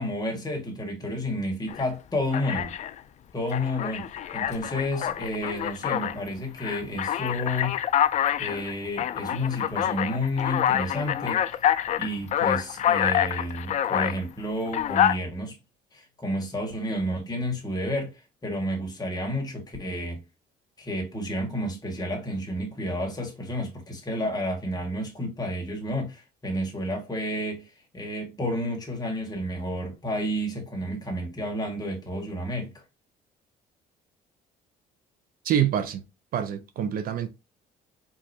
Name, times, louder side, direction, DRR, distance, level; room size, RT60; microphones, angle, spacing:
voice 1, 0.0-2.7 3.3-7.8 8.4-11.4 11.9-15.6 15.9-18.2 18.4-20.2 20.8-32.7, left 1 dB, 20° left, 1.8 m, -31 dB
Alarm, 1.7-1.9 2.3-3.0 3.5-6.2 6.6-14.2 14.7-15.2, left 10 dB, 45° left, 0.4 m, -26 dB
voice 2, 35.4-36.0 36.3-37.3, right 9 dB, 60° right, 0.6 m, -26 dB
4.5 x 3.0 x 2.7 m
cardioid pair, 110°, 17 cm